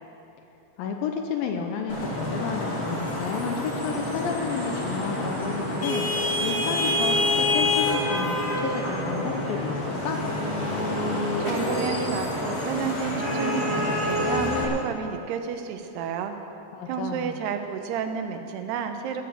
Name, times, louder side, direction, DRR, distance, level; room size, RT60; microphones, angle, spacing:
voice 1, 0.8-6.1 6.4-10.2 16.7-17.4, left 6 dB, 75° left, 4 dB, 2.4 m, -31 dB
Vehicle horn car horn honking / Traffic noise roadway noise, 1.9-14.6, left 1 dB, 45° left, 0.8 m, -27 dB
voice 2, 11.4-16.3 16.9-19.2, right 7 dB, 90° right, 7 dB, 3.0 m, -31 dB
18.5 x 7.2 x 7.3 m, 2.9 s
omnidirectional pair, 4.6 m